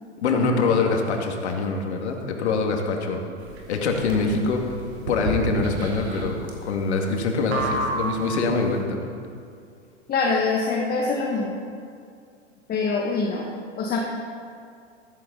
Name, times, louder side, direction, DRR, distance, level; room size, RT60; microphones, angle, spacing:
voice 1, 0.2-3.2 3.7-4.6 5.1-6.3 6.6-9.1, left 4 dB, 70° left, 2 dB, 2.3 m, -24 dB
sound 1, 3.4-8.7, right 2 dB, 60° right, 3.2 m, -31 dB
voice 2, 10.1-11.6 12.7-13.5 13.8-14.0, left 4 dB, 25° left, -2 dB, 1.7 m, -24 dB
14.5 x 14.0 x 4.1 m, 2.3 s
hypercardioid pair, 100°, 35 cm